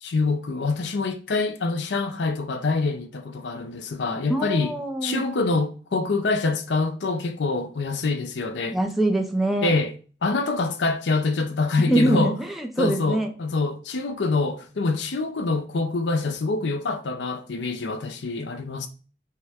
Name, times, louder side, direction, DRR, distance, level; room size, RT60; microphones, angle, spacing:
voice 1, 0.0-4.7 5.0-8.8 9.6-9.9 10.2-12.4 12.8-18.9, left 3 dB, 85° left, 0.6 m, -25 dB
voice 2, 4.3-5.2 8.7-9.7 11.9-13.3, right 1 dB, ahead, 0.5 m, -24 dB
5.5 x 2.1 x 3.5 m
head